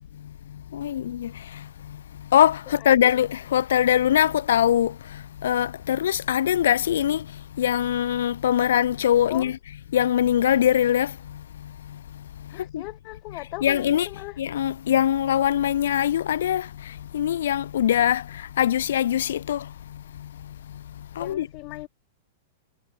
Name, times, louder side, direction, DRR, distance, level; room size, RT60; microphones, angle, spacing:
voice 1, 0.7-1.3 2.3-2.6 2.9-4.9 5.4-7.2 7.6-9.5 9.9-11.1 12.7-12.8 13.6-14.1 14.4-16.6 17.1-18.2 18.6-19.6 21.2-21.5, left 10 dB, 80° left, 0.5 m, -22 dB
voice 2, 2.8-3.1 9.3-9.5 12.5-14.4 21.2-21.9, left 24 dB, 35° left, 2.3 m, -38 dB
supercardioid pair, 165°, 0 cm